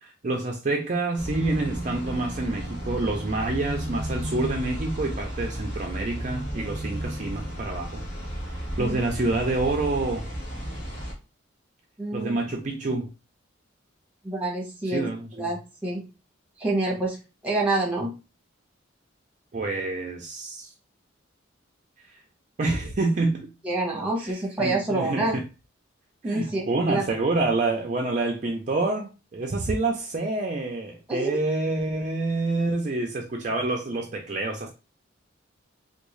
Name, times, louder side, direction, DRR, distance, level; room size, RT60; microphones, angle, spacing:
voice 1, 0.0-8.0 8.5-10.3 12.1-13.1 14.8-15.5 19.5-20.7 22.6-23.5 24.2-25.4 26.3-34.7, right 2 dB, 40° right, 0.4 m, -27 dB
sound 1, 1.2-11.1, equal, 55° left, 1.4 m, -33 dB
voice 2, 12.0-12.4 14.2-16.1 16.6-17.2 17.4-18.1 23.6-25.4 26.2-27.1 31.1-31.3, right 2 dB, 5° right, 1.0 m, -27 dB
3.5 x 2.3 x 3.1 m
head